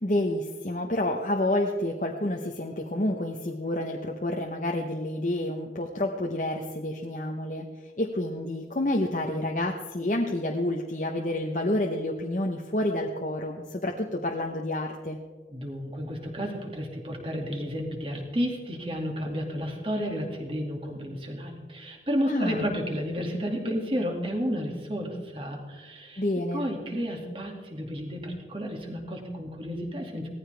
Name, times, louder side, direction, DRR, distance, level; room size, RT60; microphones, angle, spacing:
voice 1, 0.0-7.7 8.0-15.2 22.2-22.6 26.2-26.7, left 1 dB, 45° left, 0 dB, 1.0 m, -29 dB
voice 2, 15.5-26.2 26.5-30.3, equal, 30° right, 1 dB, 2.3 m, -32 dB
17.5 x 14.5 x 3.4 m, 1.4 s
head